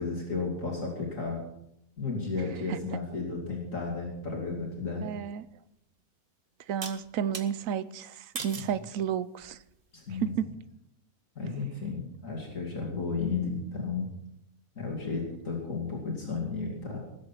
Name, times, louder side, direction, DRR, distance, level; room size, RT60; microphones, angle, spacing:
voice 1, 0.0-1.4 2.0-5.1 9.9-10.3 11.4-14.1 14.8-17.0, left 4 dB, 60° left, -1 dB, 3.0 m, -33 dB
voice 2, 2.4-2.8 5.0-5.5 6.7-9.6 10.1-10.5, right 8 dB, 70° right, 15 dB, 1.1 m, -32 dB
sound 1, 5.4-5.5 6.8-7.5 8.4-8.8 9.4-9.8, right 5 dB, 40° right, 1.2 m, -39 dB
19.5 x 7.9 x 5.8 m, 0.80 s
omnidirectional pair, 1.5 m